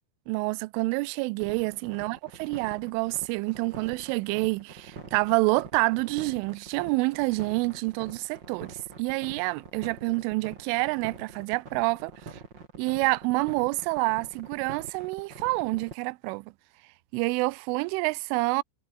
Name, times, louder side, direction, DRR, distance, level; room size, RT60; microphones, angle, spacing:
voice 1, 0.3-12.1 12.8-16.5 17.1-18.6, right 25 dB, 85° right, 3.1 m, -28 dB
sound 1, 1.4-15.9, right 5 dB, 30° right, 2.6 m, -45 dB
omnidirectional pair, 5.6 m